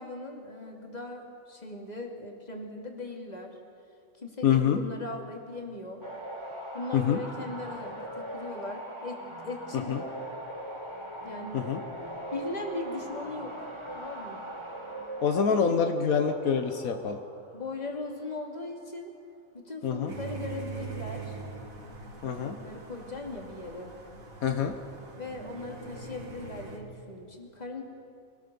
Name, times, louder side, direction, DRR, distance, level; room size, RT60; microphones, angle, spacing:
voice 1, 0.0-3.6 4.2-6.0 6.7-10.0 11.2-11.7 12.3-13.7 14.0-14.4 15.6-15.8 17.5-19.1 19.5-21.4 22.4-23.9 25.1-27.8, left 2 dB, 30° left, 1 dB, 2.6 m, -39 dB
voice 2, 4.4-4.8 6.9-7.2 9.9-10.0 11.5-11.8 15.2-17.2 19.8-20.1 22.2-22.6 24.4-24.7, left 7 dB, 80° left, 6 dB, 1.4 m, -26 dB
sound 1, 6.0-18.4 22.2-22.4, right 1 dB, 20° right, 2.8 m, -41 dB
sound 2, 20.1-26.8, right 4 dB, 75° right, 2.8 m, -42 dB
24.5 x 18.0 x 6.9 m, 2.5 s
omnidirectional pair, 1.5 m